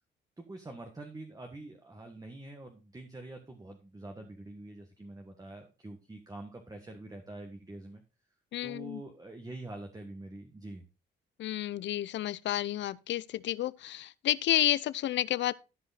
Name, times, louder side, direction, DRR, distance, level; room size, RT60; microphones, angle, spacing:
voice 1, 0.4-8.0 8.6-10.8, right 2 dB, 20° right, 1.5 m, -45 dB
voice 2, 8.5-9.0 11.4-15.5, left 13 dB, 65° left, 0.6 m, -30 dB
13.5 x 5.1 x 4.1 m
cardioid pair, 90°, 20 cm